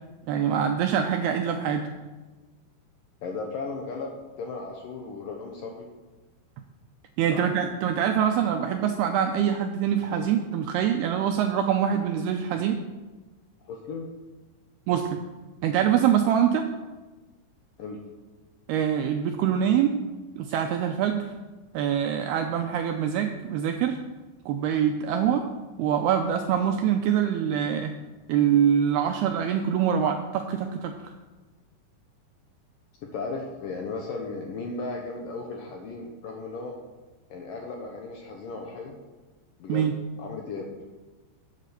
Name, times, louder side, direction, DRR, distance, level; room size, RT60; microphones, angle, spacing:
voice 1, 0.3-1.9 7.2-12.8 14.9-15.2 15.6-16.7 18.7-20.0 20.4-21.3 21.7-24.0 24.5-25.5 25.8-27.9 28.3-30.9 39.7-39.9, right 9 dB, 85° right, 5 dB, 2.3 m, -24 dB
voice 2, 3.2-5.9 7.3-7.4 13.6-14.1 17.8-18.0 33.0-36.8 37.3-39.0 39.6-39.9 40.2-40.7, left 3 dB, 70° left, 1 dB, 2.2 m, -35 dB
11.5 x 8.4 x 6.8 m, 1.2 s
omnidirectional pair, 5.3 m